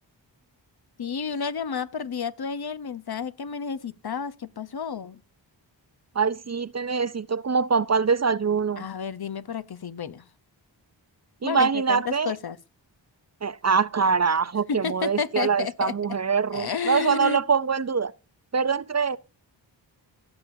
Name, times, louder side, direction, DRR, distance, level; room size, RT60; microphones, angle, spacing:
voice 1, 1.0-5.2 8.8-10.3 11.4-12.6 14.7-15.9 16.5-17.4, left 6 dB, 55° left, 0.8 m, -31 dB
voice 2, 6.2-8.9 11.4-12.3 13.4-18.1 18.5-19.2, right 5 dB, 35° right, 0.5 m, -24 dB
16.5 x 6.9 x 2.7 m
cardioid pair, 40°, 46 cm